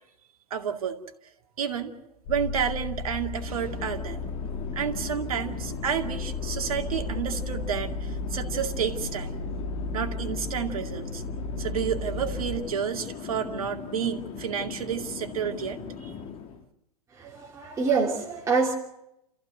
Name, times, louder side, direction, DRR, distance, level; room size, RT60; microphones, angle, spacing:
voice 1, 0.5-1.0 1.6-2.0 2.3-4.2 4.8-9.4 9.9-11.2 11.6-16.1, right 8 dB, 65° right, 5 dB, 2.3 m, -30 dB
sound 1, 2.2-12.6, left 3 dB, 50° left, 5.8 m, -34 dB
Chatter / Fixed-wing aircraft airplane, 3.2-16.6, left 6 dB, 30° left, 2.0 m, -39 dB
voice 2, 17.2-18.8, right 4 dB, 15° right, -3 dB, 3.0 m, -26 dB
29.5 x 14.5 x 7.9 m, 0.83 s
figure-of-eight pair, 105°, 19 cm